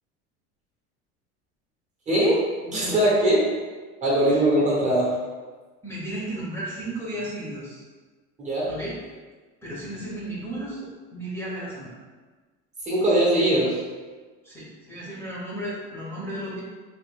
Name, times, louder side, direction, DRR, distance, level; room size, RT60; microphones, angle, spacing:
voice 1, 2.1-3.5 4.0-5.2 8.4-8.7 12.8-13.8, right 1 dB, 25° right, -6 dB, 0.8 m, -21 dB
voice 2, 4.2-4.6 5.8-7.8 8.7-9.0 9.6-11.9 14.4-16.6, right 1 dB, 10° left, -8 dB, 0.7 m, -34 dB
3.4 x 2.3 x 3.2 m, 1.4 s
cardioid pair, 145°, 30 cm